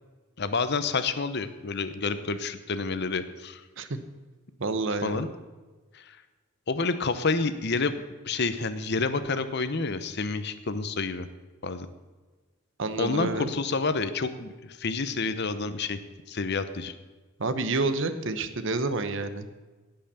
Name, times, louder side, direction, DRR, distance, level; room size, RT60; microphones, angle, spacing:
voice 1, 0.4-3.6 5.0-5.3 5.9-6.2 6.7-7.9 8.3-11.3 11.6-11.9 13.0-16.0 16.3-16.9, left 4 dB, 50° left, 11 dB, 0.8 m, -29 dB
voice 2, 4.6-5.3 12.8-13.5 17.4-19.7, right 3 dB, 60° right, 11 dB, 0.9 m, -29 dB
17.0 x 5.8 x 6.8 m, 1.3 s
head